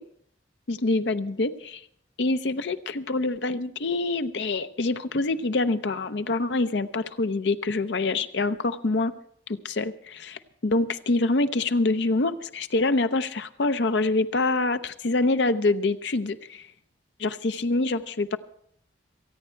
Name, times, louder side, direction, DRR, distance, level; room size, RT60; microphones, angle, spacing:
voice 1, 0.7-1.8 2.2-9.1 9.5-16.7 17.2-18.4, left 2 dB, 65° left, 10 dB, 0.6 m, -25 dB
27.5 x 9.3 x 4.5 m, 0.64 s
head